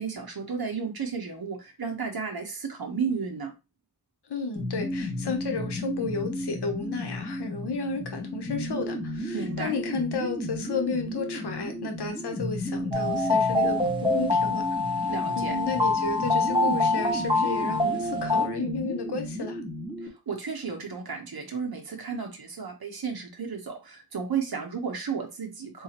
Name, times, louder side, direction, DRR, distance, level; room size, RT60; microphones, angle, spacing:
voice 1, 0.0-3.5 9.3-9.7 15.1-15.6 20.0-25.8, right 5 dB, 65° right, 1.1 m, -33 dB
voice 2, 4.3-19.6, left 4 dB, 90° left, 0.9 m, -33 dB
sound 1, 4.6-20.1, left 1 dB, 10° left, 1.4 m, -34 dB
sound 2, 12.9-18.5, left 2 dB, 15° right, 1.0 m, -25 dB
4.0 x 2.7 x 2.9 m
wide cardioid pair, 75°, 39 cm